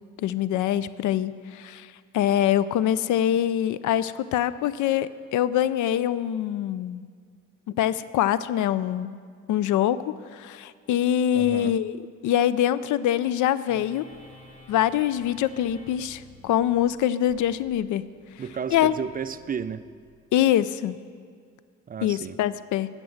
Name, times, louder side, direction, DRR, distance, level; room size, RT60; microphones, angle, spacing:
voice 1, 0.2-7.0 7.7-9.1 9.5-12.0 12.2-14.0 14.7-18.0 18.7-18.9 20.3-21.0 22.0-22.9, left 11 dB, 75° left, 16 dB, 0.5 m, -24 dB
voice 2, 11.3-11.7 18.4-19.8 21.9-22.4, right 7 dB, 30° right, 14 dB, 0.4 m, -32 dB
sound 1, 13.7-20.4, equal, 25° left, 3.3 m, -52 dB
12.0 x 6.0 x 7.8 m, 2.1 s
cardioid pair, 90°, 30 cm